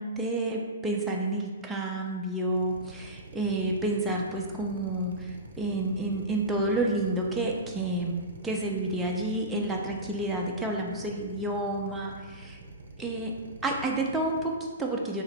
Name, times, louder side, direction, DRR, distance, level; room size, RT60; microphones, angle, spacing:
voice 1, 0.0-12.6 13.0-13.3 13.6-15.2, right 2 dB, 5° right, -1 dB, 0.5 m, -30 dB
Drill, 2.5-14.5, right 1 dB, 65° right, 0.5 m, -45 dB
2.9 x 2.8 x 4.3 m, 1.4 s
figure-of-eight pair, 130°, 0 cm